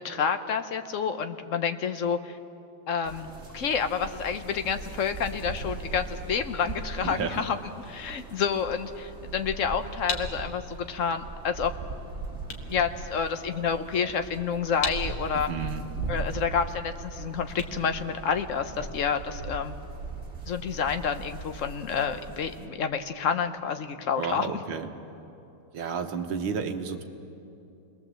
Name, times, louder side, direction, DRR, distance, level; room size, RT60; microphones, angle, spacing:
voice 1, 0.0-2.4 2.9-11.7 12.6-15.5 16.1-19.8 20.5-24.5, left 6 dB, 55° left, 8 dB, 0.8 m, -29 dB
sound 1, 3.0-22.7, right 3 dB, 30° right, 2.7 m, -39 dB
voice 2, 7.0-7.5 15.3-15.9 24.2-24.9 25.7-27.0, right 6 dB, 70° right, 6 dB, 2.0 m, -32 dB
sound 2, 10.0-18.8, left 4 dB, 85° left, 2.7 m, -40 dB
27.5 x 21.0 x 7.6 m, 2.7 s
omnidirectional pair, 2.4 m